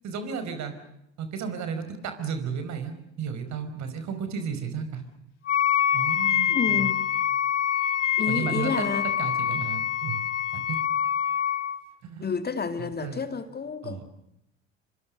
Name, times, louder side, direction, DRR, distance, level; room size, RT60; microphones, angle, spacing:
voice 1, 0.0-0.7 1.2-5.0 5.9-6.9 8.3-8.9 9.2-10.2 10.5-10.8 12.0-12.3 13.0-13.2 13.8-14.0, right 6 dB, 50° right, 5.2 m, -33 dB
Wind instrument woodwind instrument, 5.5-11.8, left 9 dB, 85° left, 1.1 m, -25 dB
voice 2, 6.5-7.0 8.2-9.1 12.2-14.0, left 5 dB, 25° left, 2.5 m, -29 dB
27.0 x 25.5 x 6.6 m
figure-of-eight pair, 60°, 36 cm